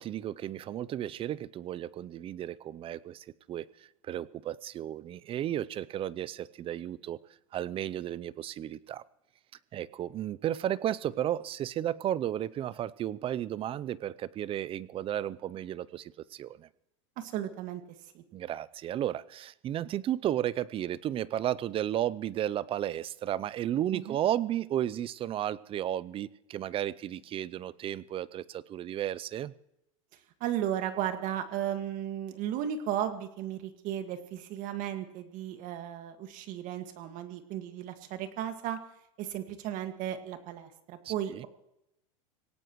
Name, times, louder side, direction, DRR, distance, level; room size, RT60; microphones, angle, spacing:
voice 1, 0.0-3.7 4.0-7.2 7.5-9.0 9.7-16.7 18.3-29.5 41.0-41.5, right 11 dB, 30° right, 19 dB, 0.6 m, -33 dB
voice 2, 17.2-17.8 18.1-18.2 23.9-24.2 30.4-38.8 39.2-41.5, right 10 dB, 50° right, 8 dB, 1.9 m, -35 dB
26.0 x 17.5 x 3.1 m, 0.83 s
hypercardioid pair, 110°, 17 cm